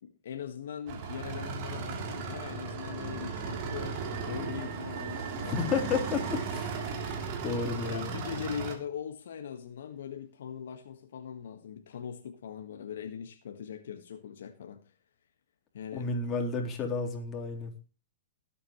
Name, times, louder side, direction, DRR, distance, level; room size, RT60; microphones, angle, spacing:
voice 1, 0.0-4.0 4.3-6.0 7.8-14.8 15.7-16.1, left 8 dB, 75° left, 1.6 m, -41 dB
sound 1, 0.9-8.8, right 5 dB, 45° right, 3.3 m, -36 dB
voice 2, 5.4-6.7 7.4-8.1 15.9-17.7, left 5 dB, 25° left, 3.7 m, -31 dB
21.5 x 8.7 x 3.1 m
hypercardioid pair, 125°, 0 cm